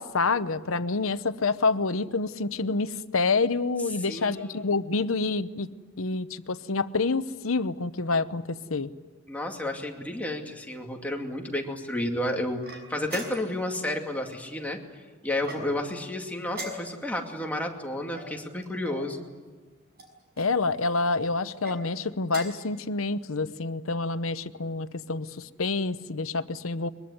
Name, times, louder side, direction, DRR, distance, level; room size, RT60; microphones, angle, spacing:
voice 1, 0.0-5.7 6.0-8.9 20.4-26.9, left 3 dB, 80° left, 13 dB, 0.9 m, -27 dB
voice 2, 4.0-4.7 9.3-14.8 15.2-19.2, left 1 dB, 10° left, 1 dB, 2.4 m, -31 dB
sound 1, 12.6-13.7 15.4-16.0 16.5-17.2 18.1-19.1 19.9-20.5 21.5-21.8 22.2-22.7, right 1 dB, 50° right, 6.1 m, -41 dB
23.0 x 22.5 x 9.7 m, 1.4 s
head